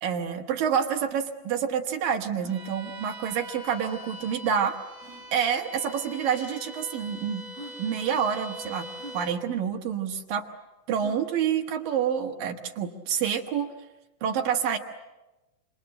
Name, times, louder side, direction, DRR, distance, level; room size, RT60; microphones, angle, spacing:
voice 1, 0.0-4.8 5.3-7.4 7.8-8.9 9.1-10.5 10.9-13.7 14.2-14.8, right 8 dB, 65° right, 3 dB, 2.8 m, -28 dB
sound 1, 0.8-0.9 1.1-1.2 1.7-1.8 2.3-2.6 4.0-4.1 5.0-5.3 6.3-6.4 7.1-7.2 7.5-7.8 9.0-9.2 11.0-11.3, right 2 dB, 20° left, 5.2 m, -45 dB
Bowed string instrument, 2.5-9.5, equal, 5° left, 5.0 m, -43 dB
28.0 x 27.0 x 7.7 m, 1.1 s
omnidirectional pair, 5.0 m